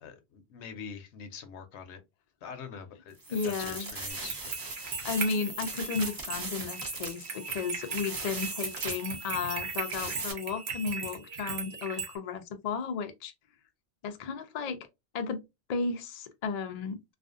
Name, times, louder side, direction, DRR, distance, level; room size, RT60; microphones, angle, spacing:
voice 1, 0.0-2.0 2.4-4.4, left 6 dB, 85° left, 0.9 m, -44 dB
sound 1, 3.2-10.3, right 3 dB, 35° right, 0.3 m, -39 dB
voice 2, 3.3-3.9 4.8-13.3 14.0-14.8 15.1-15.4 15.7-17.0, left 5 dB, 55° left, 0.4 m, -34 dB
sound 2, 4.1-12.2, right 5 dB, 70° right, 0.9 m, -38 dB
2.5 x 2.4 x 2.4 m
omnidirectional pair, 1.1 m